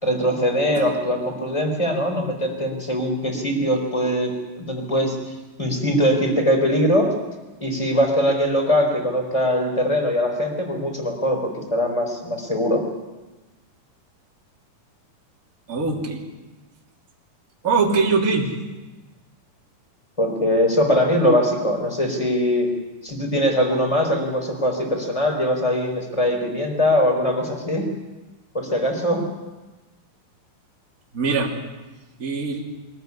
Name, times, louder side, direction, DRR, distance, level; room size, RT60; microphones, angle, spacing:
voice 1, 0.0-5.2 5.6-7.1 7.6-12.8 20.2-22.7 23.0-27.9 28.5-29.2, equal, 10° left, 3 dB, 4.0 m, -21 dB
voice 2, 15.7-16.2 17.6-18.5 31.1-31.5 32.2-32.6, right 4 dB, 25° right, -2 dB, 3.1 m, -21 dB
24.0 x 14.5 x 9.6 m, 1.2 s
omnidirectional pair, 3.9 m